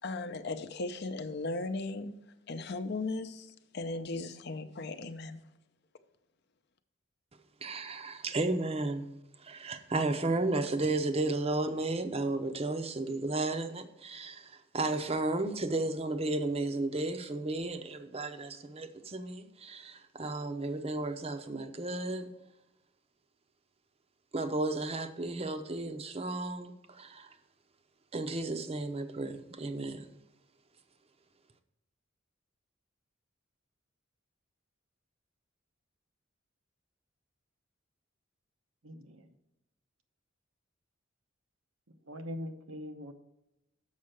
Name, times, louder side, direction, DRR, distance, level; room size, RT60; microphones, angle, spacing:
voice 1, 0.0-2.1 2.5-5.4, left 3 dB, 55° left, 0.6 m, -37 dB
voice 2, 7.6-9.1 9.4-22.3 24.3-27.4 28.1-30.1, right 2 dB, 30° right, 0.6 m, -33 dB
voice 3, 38.8-39.3 42.1-43.1, left 1 dB, 90° right, 1.0 m, -42 dB
7.2 x 5.5 x 6.4 m
head